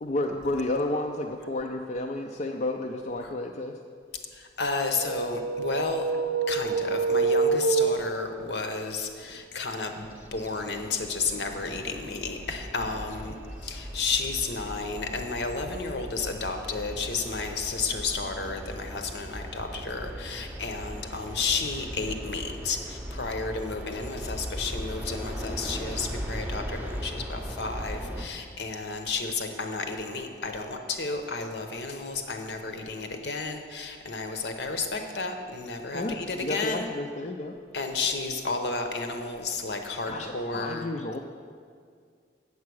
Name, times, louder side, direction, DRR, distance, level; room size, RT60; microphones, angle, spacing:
voice 1, 0.0-3.8 35.9-37.5 40.1-41.2, left 2 dB, 40° left, 2 dB, 0.4 m, -31 dB
voice 2, 4.3-6.1 6.5-10.1 10.3-36.9 37.7-40.9, left 4 dB, 65° left, 5 dB, 0.9 m, -32 dB
sound 1, 5.0-8.6, right 4 dB, 80° right, 0.6 m, -26 dB
sound 2, 10.0-28.3, equal, 10° right, 0.7 m, -38 dB
8.3 x 7.4 x 6.2 m, 2.1 s
head